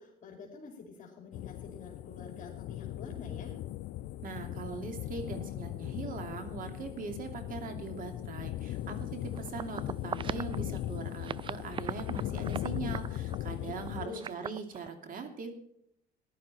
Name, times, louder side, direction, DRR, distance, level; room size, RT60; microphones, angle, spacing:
voice 1, 0.0-3.6 13.4-14.3, left 4 dB, 50° left, 0 dB, 3.0 m, -47 dB
sound 1, 1.3-14.1, left 14 dB, 75° left, 0.5 m, -38 dB
voice 2, 4.2-15.5, right 5 dB, 55° right, 6 dB, 2.7 m, -41 dB
sound 2, 9.2-10.9 11.2-14.9, right 7 dB, 30° right, 0.4 m, -40 dB
15.0 x 11.0 x 4.3 m, 0.73 s
cardioid pair, 110°, 17 cm